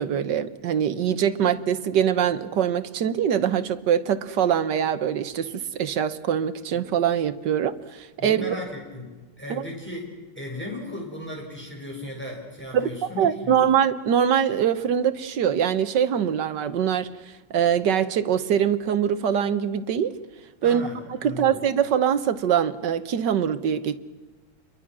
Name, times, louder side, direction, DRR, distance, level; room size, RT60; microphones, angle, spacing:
voice 1, 0.0-8.5 9.5-9.6 12.7-17.1 17.5-20.1 20.6-20.8 21.2-24.0, right 8 dB, 65° right, 12 dB, 1.6 m, -23 dB
voice 2, 8.2-9.1 9.4-10.0 10.3-13.5 20.6-21.0 21.2-21.6, left 1 dB, 5° left, -2 dB, 6.4 m, -36 dB
28.5 x 23.0 x 6.2 m, 1.3 s
omnidirectional pair, 2.1 m